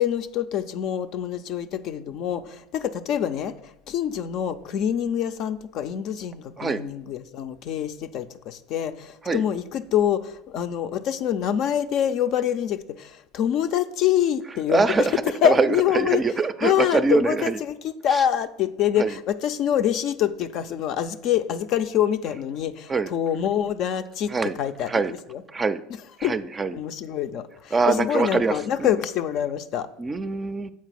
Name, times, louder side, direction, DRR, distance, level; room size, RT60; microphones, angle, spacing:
voice 1, 0.0-14.9 15.4-16.2 16.6-24.3 24.6-25.4 26.2-26.4 26.7-29.9, left 10 dB, 55° left, 10 dB, 0.4 m, -25 dB
voice 2, 14.7-17.6 18.1-18.2 19.0-19.1 22.9-23.1 24.3-24.5 24.9-25.1 25.5-25.8 26.2-26.8 27.7-28.9 30.0-30.7, right 4 dB, 25° right, 13 dB, 0.4 m, -24 dB
7.3 x 4.5 x 5.8 m, 0.84 s
hypercardioid pair, 75°, 0 cm